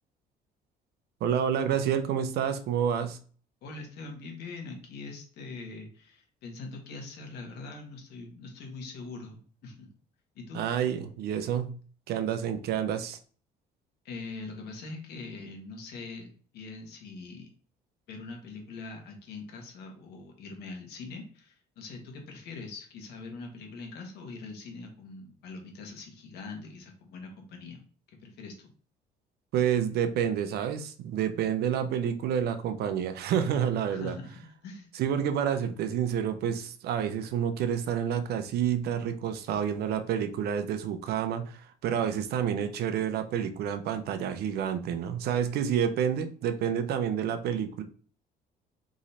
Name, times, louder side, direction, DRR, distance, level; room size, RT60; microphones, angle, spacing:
voice 1, 1.2-3.2 10.5-11.7 12.1-13.2 29.5-34.1 35.0-47.8, right 8 dB, 70° right, 9 dB, 0.7 m, -29 dB
voice 2, 3.6-9.9 10.3-10.6 14.0-17.5 18.1-27.8 28.2-28.7 33.9-34.9, left 3 dB, 75° left, 3 dB, 1.4 m, -43 dB
3.7 x 3.1 x 4.2 m, 0.43 s
cardioid pair, 110°, 17 cm